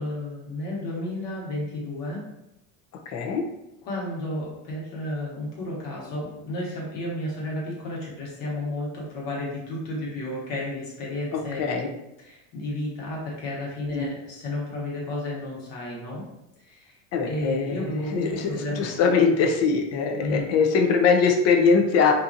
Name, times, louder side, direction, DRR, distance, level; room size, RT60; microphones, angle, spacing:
voice 1, 0.0-2.2 3.8-11.6 12.2-16.2 16.6-17.0 17.3-18.9 20.2-20.5, left 1 dB, 60° left, -4 dB, 1.3 m, -32 dB
voice 2, 3.1-3.4 11.3-11.9 13.9-14.1 17.1-22.1, left 5 dB, 40° left, 2 dB, 0.5 m, -22 dB
2.7 x 2.5 x 2.5 m, 0.87 s
cardioid pair, 145°, 38 cm